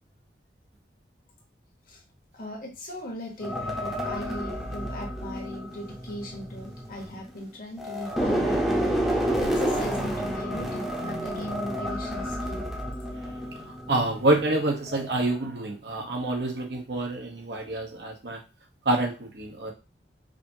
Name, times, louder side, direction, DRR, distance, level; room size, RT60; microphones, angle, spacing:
voice 1, 2.3-12.6, left 1 dB, 50° left, 1 dB, 1.2 m, -38 dB
sound 1, 3.4-7.4 7.8-14.5 14.9-15.1, equal, ahead, 0.8 m, -30 dB
voice 2, 13.9-18.4 18.9-19.7, right 2 dB, 70° right, 2 dB, 1.0 m, -27 dB
5.0 x 2.8 x 2.7 m, 0.30 s
head